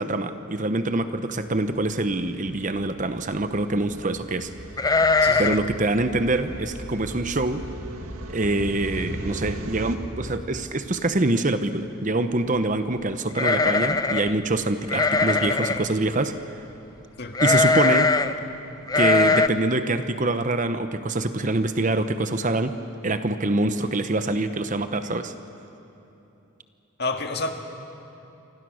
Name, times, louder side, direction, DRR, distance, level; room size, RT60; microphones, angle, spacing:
voice 1, 0.0-4.5 5.4-7.6 8.3-16.3 17.4-18.1 18.9-22.7 23.0-25.3, right 2 dB, 35° right, 10 dB, 0.9 m, -25 dB
sound 1, 1.3-10.0, right 1 dB, 80° right, 2.1 m, -38 dB
sound 2, 4.8-5.7 6.0-6.1 6.5-6.8 7.4-7.5 7.8-8.3 8.6-8.7 9.8-9.9 10.2-10.7 13.3-14.3 14.9-15.9 17.3-18.3 18.9-19.5, left 3 dB, 15° left, 0.6 m, -21 dB
voice 2, 5.2-5.6 17.2-17.4 27.0-27.5, left 3 dB, 50° left, 4 dB, 1.9 m, -29 dB
28.5 x 25.0 x 6.4 m, 2.9 s
head